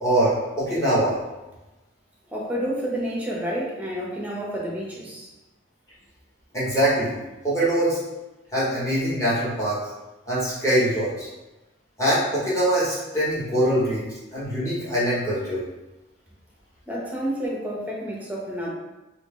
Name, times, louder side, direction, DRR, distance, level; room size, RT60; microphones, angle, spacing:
voice 1, 0.0-1.2 6.5-7.2 7.4-8.0 8.5-9.8 10.3-11.3 12.0-14.0 14.3-15.6, right 1 dB, 15° left, -10 dB, 1.1 m, -23 dB
voice 2, 2.3-5.3 16.9-18.7, equal, 5° right, -4 dB, 0.6 m, -29 dB
2.8 x 2.7 x 3.6 m, 1.1 s
head